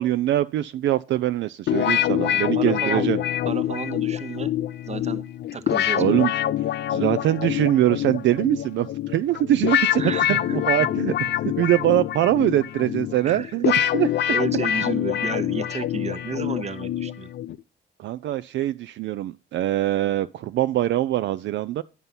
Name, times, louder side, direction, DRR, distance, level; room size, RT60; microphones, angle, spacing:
voice 1, 0.0-3.2 6.0-6.3 6.9-14.1 18.0-21.8, right 13 dB, 70° right, 0.4 m, -23 dB
sound 1, 1.7-17.6, left 12 dB, 60° left, 0.4 m, -25 dB
voice 2, 2.2-3.1 3.4-4.5 4.9-5.2 5.5-6.3 10.0-11.2 13.2-13.5 14.3-17.3, right 5 dB, 35° right, 0.9 m, -32 dB
9.5 x 5.5 x 5.7 m
cardioid pair, 90°, 20 cm